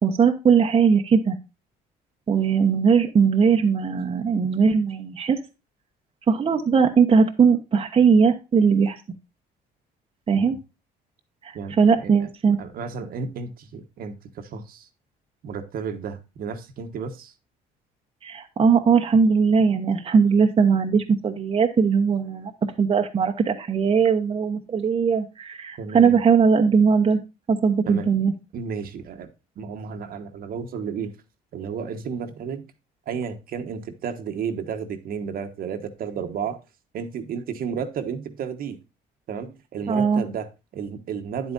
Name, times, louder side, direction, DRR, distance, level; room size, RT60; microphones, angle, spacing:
voice 1, 0.0-1.4 2.3-5.4 6.3-9.0 10.3-10.6 11.4-11.5 11.8-12.6 18.2-22.5 22.8-27.2 27.5-28.3 39.9-40.2, right 6 dB, 35° right, 1.0 m, -19 dB
voice 2, 11.5-14.9 15.4-17.3 25.8-26.2 27.9-28.1 28.5-29.3 29.6-31.1 31.5-32.7 33.1-36.6 36.9-38.8 39.3-41.5, right 6 dB, 60° right, 1.2 m, -32 dB
9.5 x 8.2 x 2.6 m
cardioid pair, 110°, 17 cm